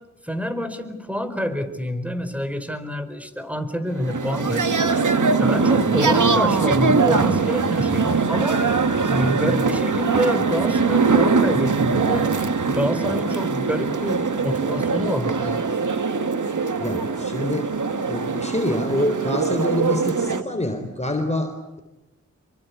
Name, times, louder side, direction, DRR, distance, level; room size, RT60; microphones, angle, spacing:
voice 1, 0.2-5.0 5.4-8.7 9.0-15.7, equal, 5° right, 9 dB, 4.5 m, -27 dB
sound 1, 3.9-20.4, right 4 dB, 80° right, 1.9 m, -22 dB
voice 2, 16.8-17.7 18.1-21.8, left 1 dB, 20° left, 5 dB, 3.9 m, -26 dB
27.0 x 24.0 x 8.4 m, 0.98 s
wide cardioid pair, 55°, 30 cm